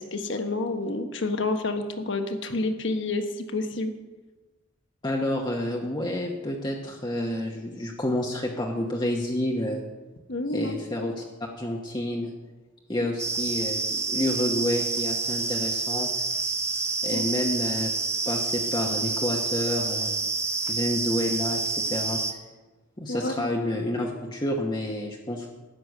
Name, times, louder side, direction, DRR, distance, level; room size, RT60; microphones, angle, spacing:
voice 1, 0.0-3.2 3.5-3.9 10.3-10.7 13.0-13.1 17.1-17.2 23.1-23.5, left 2 dB, 60° left, 6 dB, 1.3 m, -29 dB
voice 2, 5.0-9.8 10.5-11.2 11.6-12.3 12.9-16.1 17.0-17.9 18.3-20.1 20.7-22.2 23.0-25.5, left 1 dB, 20° left, -1 dB, 1.1 m, -29 dB
sound 1, 13.2-22.3, right 4 dB, 15° right, 0.7 m, -28 dB
13.0 x 7.0 x 9.4 m, 1.2 s
head